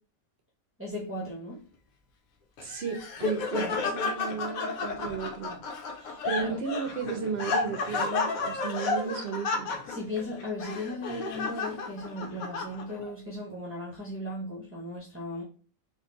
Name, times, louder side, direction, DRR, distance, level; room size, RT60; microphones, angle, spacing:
voice 1, 0.8-1.6 3.6-3.8 5.9-6.6 9.0-9.3 9.9-15.4, left 1 dB, 15° right, 0.6 m, -37 dB
Laughter, 2.6-13.1, left 4 dB, 80° left, 1.1 m, -32 dB
voice 2, 2.6-5.6 6.2-9.7, right 6 dB, 60° right, 0.7 m, -34 dB
3.6 x 2.5 x 3.7 m
omnidirectional pair, 1.5 m